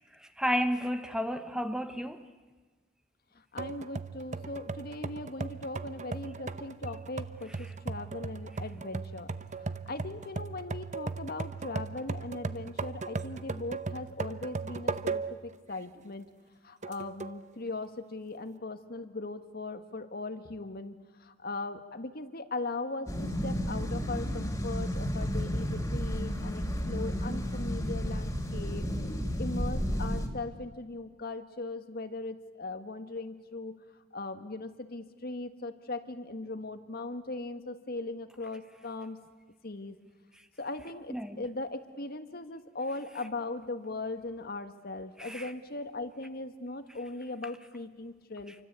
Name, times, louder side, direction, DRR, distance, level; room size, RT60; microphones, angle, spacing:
voice 1, 0.2-2.3 41.1-41.4 45.2-45.5, equal, 5° right, 1.0 m, -32 dB
voice 2, 3.5-9.3 9.6-16.3 16.6-20.9 21.2-28.9 29.4-33.8 34.1-39.2 39.6-40.0 40.6-48.5, left 2 dB, 55° left, 1.7 m, -39 dB
sound 1, 3.6-15.5 16.0-16.1 16.8-17.4, right 4 dB, 40° right, 0.8 m, -37 dB
sound 2, 23.1-30.3, equal, 15° left, 3.0 m, -32 dB
28.0 x 24.5 x 8.3 m
head